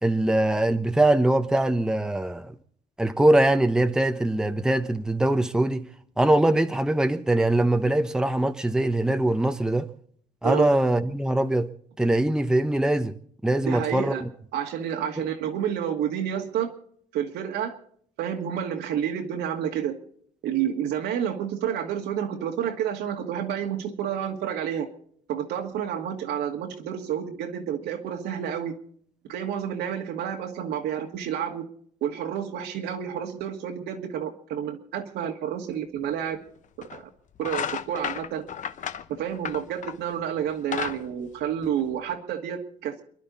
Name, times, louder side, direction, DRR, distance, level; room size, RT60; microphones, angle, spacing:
voice 1, 0.0-2.5 3.0-5.9 6.2-9.9 10.4-11.7 12.0-13.2 13.4-14.3 15.2-15.3, right 1 dB, 5° right, 0.9 m, -22 dB
voice 2, 13.6-14.2 14.5-16.7 17.1-17.8 18.2-20.0 20.4-24.9 25.3-28.7 29.3-31.7 32.0-36.4 36.8-37.1 37.4-38.5 39.1-43.0, right 9 dB, 80° right, 2.2 m, -30 dB
sound 1, 36.1-36.2 36.8-37.0 37.4-40.1 40.5-42.1, left 8 dB, 45° left, 0.9 m, -33 dB
29.5 x 11.0 x 4.1 m
cardioid pair, 110°, 17 cm